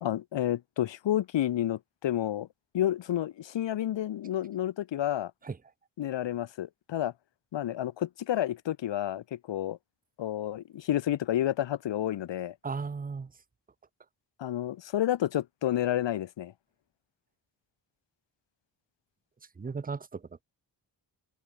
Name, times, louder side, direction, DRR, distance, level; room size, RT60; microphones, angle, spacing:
voice 1, 0.0-2.5 2.7-5.3 6.0-7.1 7.5-9.8 10.2-12.5 14.4-16.5, left 12 dB, 90° left, 0.9 m, -30 dB
voice 2, 12.6-13.3 19.6-20.4, right 5 dB, 20° right, 0.6 m, -36 dB
open air
wide cardioid pair, 180°, 42 cm